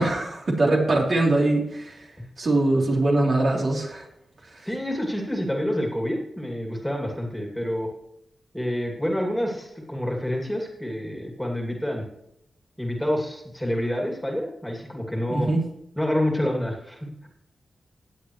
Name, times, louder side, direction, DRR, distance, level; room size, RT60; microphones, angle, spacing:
voice 1, 0.0-1.9 2.4-4.0 15.3-15.6, right 2 dB, 60° right, -2 dB, 3.3 m, -22 dB
voice 2, 4.6-7.9 8.5-12.0 12.8-15.5 16.0-17.3, equal, 5° left, 0 dB, 2.5 m, -28 dB
17.0 x 8.0 x 3.1 m, 0.80 s
cardioid pair, 65°, 0 cm